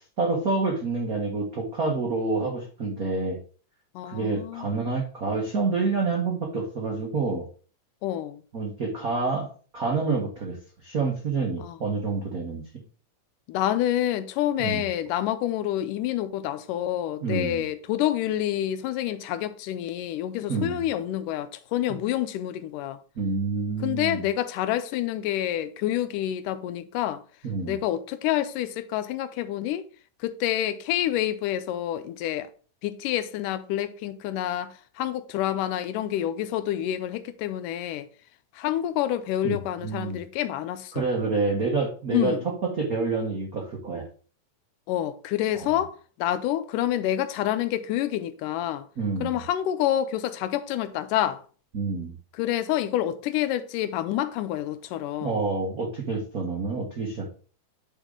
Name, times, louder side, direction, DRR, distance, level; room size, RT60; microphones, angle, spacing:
voice 1, 0.0-3.4 4.0-7.5 8.5-9.5 9.7-10.6 10.8-12.6 14.6-14.9 17.2-17.6 20.5-20.8 23.1-24.2 27.4-27.8 39.4-40.2 40.9-44.1 45.6-45.8 49.0-49.5 51.7-52.1 55.2-57.3, right 4 dB, 80° right, 0.7 m, -28 dB
voice 2, 4.0-4.8 8.0-8.4 11.6-11.8 13.5-23.0 23.8-27.2 27.7-29.8 30.2-32.5 32.8-38.1 38.5-41.1 42.1-42.4 44.9-48.9 49.2-51.4 52.3-55.4, left 12 dB, 90° left, 2.2 m, -28 dB
9.1 x 4.4 x 3.7 m
omnidirectional pair, 3.7 m